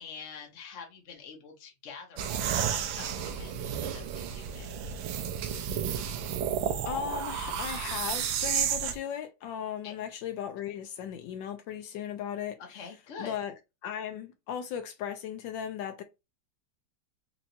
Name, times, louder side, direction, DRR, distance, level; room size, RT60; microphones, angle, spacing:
voice 1, 0.0-4.7 9.8-10.0 12.6-13.4, left 5 dB, 50° left, 0.9 m, -46 dB
sound 1, 2.2-9.0, right 8 dB, 90° right, 1.4 m, -32 dB
voice 2, 6.8-12.6 13.2-13.5 13.8-16.0, left 9 dB, 75° left, 1.2 m, -36 dB
4.5 x 3.0 x 2.7 m
omnidirectional pair, 2.1 m